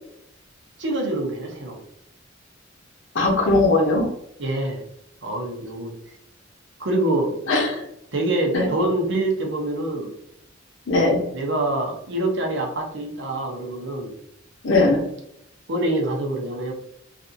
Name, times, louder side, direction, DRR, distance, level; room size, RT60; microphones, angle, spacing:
voice 1, 0.8-1.8 4.4-4.8 5.2-5.9 6.8-7.4 8.1-10.1 11.3-14.1 15.7-16.7, right 1 dB, 65° right, 1 dB, 0.8 m, -25 dB
voice 2, 3.1-4.1 7.5-7.8 8.5-8.7 10.9-11.2 14.6-15.1, left 2 dB, 70° left, 0 dB, 0.8 m, -19 dB
3.3 x 2.6 x 2.7 m, 0.75 s
head